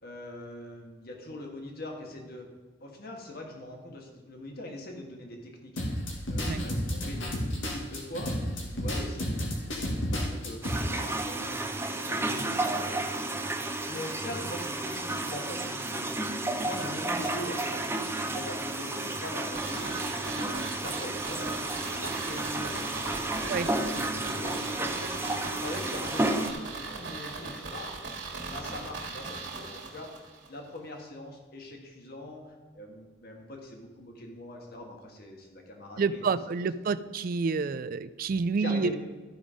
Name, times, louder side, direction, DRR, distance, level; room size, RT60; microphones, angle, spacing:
voice 1, 0.0-2.5 2.8-5.8 6.3-12.9 13.9-16.2 16.6-21.6 21.9-22.9 23.3-25.1 25.6-27.9 28.5-37.1 38.6-39.0, left 1 dB, 55° left, 2 dB, 1.6 m, -42 dB
sound 1, 5.8-10.8, equal, 85° left, 1.9 m, -31 dB
sound 2, 10.6-26.5, right 2 dB, 15° right, 0.7 m, -32 dB
sound 3, 19.5-30.5 30.8-30.9, right 4 dB, 65° right, 1.9 m, -39 dB
voice 2, 36.0-38.9, right 4 dB, 45° right, 15 dB, 0.4 m, -28 dB
12.5 x 5.4 x 5.0 m, 1.3 s
head